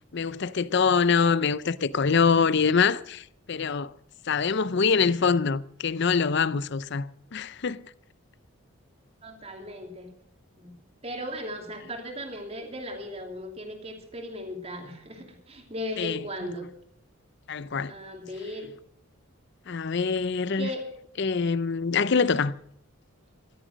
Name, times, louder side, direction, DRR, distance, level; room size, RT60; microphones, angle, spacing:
voice 1, 0.1-3.9 4.3-7.8 16.0-16.2 17.5-17.9 19.7-20.7 21.2-22.5, left 5 dB, 50° left, 0.5 m, -24 dB
voice 2, 9.2-10.1 10.6-10.7 11.0-16.7 17.9-18.7 20.6-20.9 22.2-22.5, equal, 30° right, 2.8 m, -37 dB
15.0 x 13.0 x 6.3 m
head